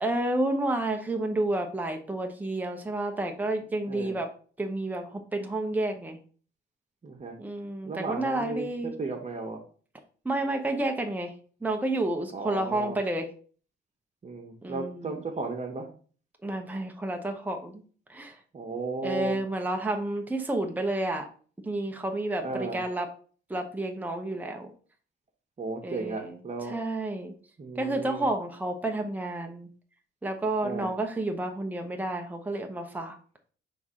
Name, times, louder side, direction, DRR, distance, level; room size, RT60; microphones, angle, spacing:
voice 1, 0.0-4.3 4.6-6.2 7.4-8.9 10.2-11.3 11.6-13.3 14.6-15.2 16.4-17.8 18.1-18.4 19.0-21.3 21.6-23.1 23.5-24.7 25.8-26.4 26.7-27.3 27.8-29.7 30.2-33.2, right 2 dB, 10° right, 3 dB, 0.9 m, -30 dB
voice 2, 3.9-4.2 7.0-7.4 7.8-9.6 12.3-13.0 14.2-15.9 18.5-19.4 22.4-22.8 25.6-26.8 27.6-28.3 30.6-30.9, right 3 dB, 35° right, 2 dB, 1.3 m, -35 dB
4.6 x 3.7 x 5.6 m, 0.42 s
cardioid pair, 90°, 20 cm